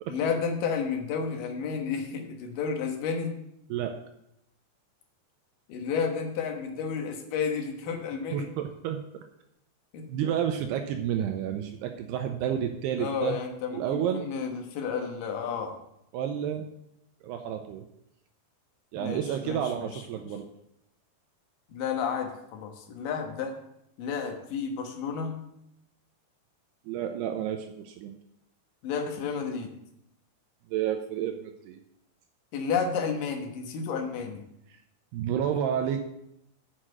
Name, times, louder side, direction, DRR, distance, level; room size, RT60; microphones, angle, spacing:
voice 1, 0.1-3.3 5.7-8.5 9.9-10.1 13.0-15.7 18.9-20.0 21.7-23.6 24.0-25.3 28.8-29.7 32.5-34.4, left 6 dB, 65° left, 3 dB, 2.4 m, -31 dB
voice 2, 8.3-9.2 10.1-13.4 13.7-14.3 16.1-16.7 17.2-17.8 18.9-20.4 26.9-28.1 30.7-31.8 34.7-34.8 35.1-36.0, right 9 dB, 85° right, 5 dB, 2.4 m, -30 dB
7.3 x 6.5 x 7.7 m, 0.82 s
omnidirectional pair, 5.2 m